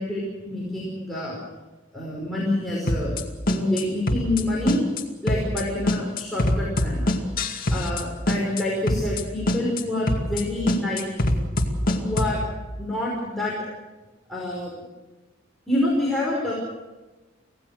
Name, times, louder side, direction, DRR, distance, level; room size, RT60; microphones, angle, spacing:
voice 1, 0.0-1.4 1.9-3.1 3.5-4.8 5.2-7.1 7.7-11.3 11.9-12.5 12.8-13.5 14.3-14.7 15.7-16.5, left 1 dB, ahead, -6 dB, 5.2 m, -27 dB
sound 1, 2.9-3.2 3.5-4.4 4.7-5.0 5.3-5.6 5.9-8.0 8.3-8.6 8.9-9.2 9.5-9.8 10.1-10.4 10.7-12.4, left 1 dB, 50° left, 2.3 m, -23 dB
26.0 x 17.0 x 6.6 m, 1.2 s
head